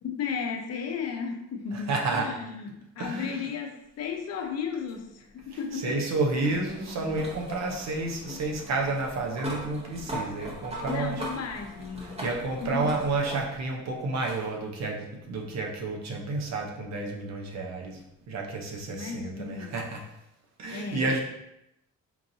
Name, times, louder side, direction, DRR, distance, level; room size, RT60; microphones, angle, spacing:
voice 1, 0.0-6.0 7.0-7.1 10.8-12.3 12.6-12.9 18.9-19.8 20.7-21.1, left 6 dB, 55° left, 4 dB, 0.6 m, -34 dB
voice 2, 1.7-2.3 3.0-3.5 5.7-11.2 12.0-18.0 18.3-20.0 20.6-21.2, right 3 dB, 60° right, 1 dB, 0.9 m, -30 dB
sound 1, 4.9-13.8 14.2-14.4 15.7-15.8 18.7-18.8, equal, 20° right, 1.0 m, -40 dB
4.5 x 2.6 x 2.7 m, 0.85 s
cardioid pair, 90°, 30 cm